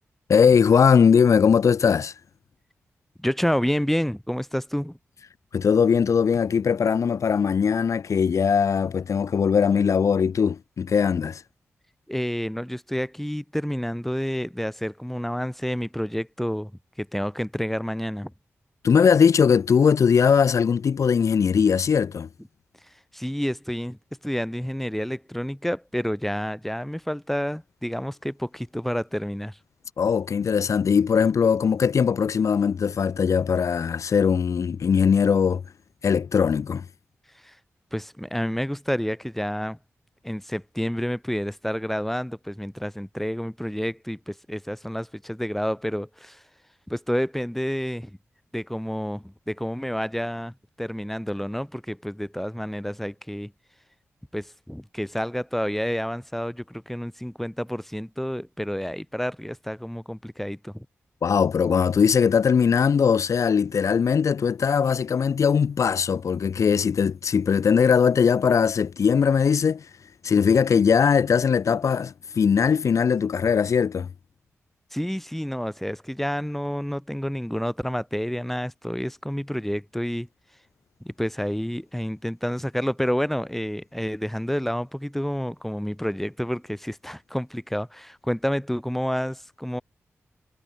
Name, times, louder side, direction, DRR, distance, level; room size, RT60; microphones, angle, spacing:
voice 1, 0.3-2.1 5.5-11.4 18.8-22.3 30.0-35.6 36.0-36.8 61.2-69.9 70.2-74.1, left 6 dB, 75° left, 2.4 m, -20 dB
voice 2, 3.2-5.0 12.1-16.7 17.0-18.3 23.1-24.0 24.2-29.6 37.4-37.6 37.9-39.8 40.2-46.4 46.9-48.1 48.5-53.5 54.3-60.9 74.9-80.3 81.0-89.8, equal, 5° left, 4.6 m, -29 dB
cardioid pair, 45°, 5 cm